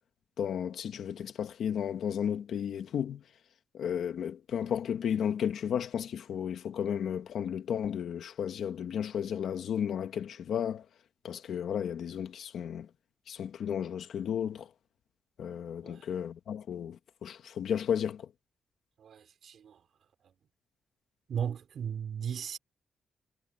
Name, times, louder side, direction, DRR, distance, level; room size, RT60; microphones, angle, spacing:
voice 1, 0.4-3.2 3.7-10.8 11.2-12.9 13.3-14.7 15.4-18.3, left 8 dB, 75° left, 1.5 m, -33 dB
voice 2, 19.0-19.8 21.3-22.6, right 8 dB, 65° right, 5.9 m, -36 dB
wide cardioid pair, 150°, 0 cm